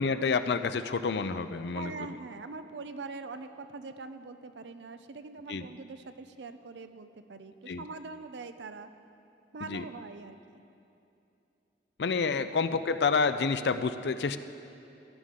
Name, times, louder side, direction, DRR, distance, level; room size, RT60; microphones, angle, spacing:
voice 1, 0.0-1.9 5.5-5.7 7.7-7.8 9.6-9.8 12.0-14.4, left 4 dB, 70° left, 11 dB, 0.5 m, -28 dB
voice 2, 1.7-8.9 9.5-10.6, right 3 dB, 80° right, 10 dB, 0.6 m, -43 dB
16.5 x 11.5 x 3.8 m, 2.8 s
head